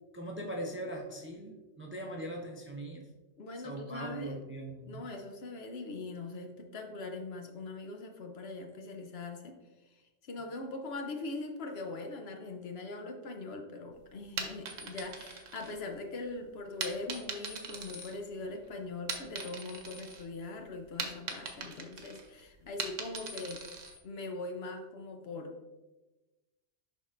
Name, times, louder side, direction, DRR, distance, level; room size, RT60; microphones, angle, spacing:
voice 1, 0.1-3.1 3.6-5.1, right 1 dB, 15° right, 0 dB, 0.5 m, -40 dB
voice 2, 3.4-4.4 4.9-9.6 9.9-23.8 24.0-25.6, left 3 dB, 60° left, 4 dB, 0.9 m, -41 dB
sound 1, 14.2-16.2 16.8-18.6 18.9-20.2 20.6-24.0, right 5 dB, 90° right, 1.1 m, -41 dB
10.5 x 3.7 x 2.5 m, 1.1 s
omnidirectional pair, 1.3 m